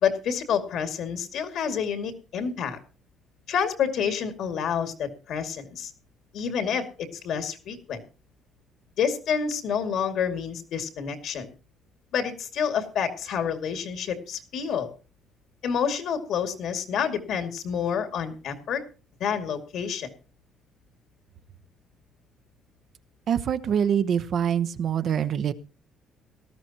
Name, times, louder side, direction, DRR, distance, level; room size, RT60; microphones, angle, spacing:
voice 1, 0.0-2.8 3.5-5.9 6.3-8.0 9.0-11.5 12.1-14.9 15.6-18.8 19.2-20.1, left 7 dB, 65° left, 8 dB, 2.3 m, -28 dB
voice 2, 23.3-25.5, right 8 dB, 50° right, 12 dB, 0.8 m, -24 dB
18.0 x 13.0 x 2.9 m, 0.34 s
cardioid pair, 130°, 0 cm